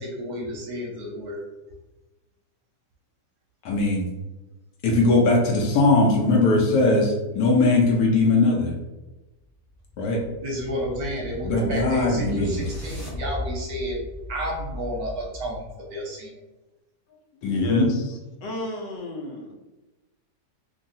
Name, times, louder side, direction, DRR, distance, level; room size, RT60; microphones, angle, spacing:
voice 1, 0.0-1.4 10.4-14.0 14.3-16.3, equal, 70° right, -1 dB, 1.0 m, -31 dB
voice 2, 3.6-4.1 4.8-8.7 10.0-10.2 11.4-12.6 17.4-17.9, left 2 dB, 70° left, -1 dB, 1.0 m, -20 dB
sound 1, 9.4-15.8, left 2 dB, 40° left, 0.3 m, -36 dB
voice 3, 17.4-19.5, left 1 dB, 85° left, 1 dB, 1.3 m, -33 dB
2.9 x 2.6 x 2.6 m, 1.1 s
omnidirectional pair, 1.9 m